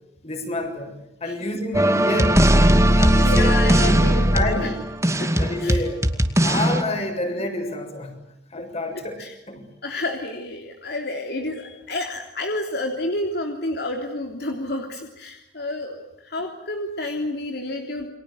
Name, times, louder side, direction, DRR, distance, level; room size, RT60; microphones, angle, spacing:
voice 1, 0.2-0.9 1.2-2.4 3.0-4.8 5.4-6.0 6.4-8.2 8.5-9.6, left 1 dB, 35° left, 5 dB, 7.0 m, -28 dB
sound 1, 1.7-6.8, right 1 dB, 15° right, 2.4 m, -18 dB
voice 2, 2.8-4.7 5.2-5.3 5.6-5.9 8.9-9.3 9.8-18.1, left 1 dB, 65° left, 3 dB, 3.3 m, -30 dB
29.5 x 24.5 x 8.0 m, 0.84 s
head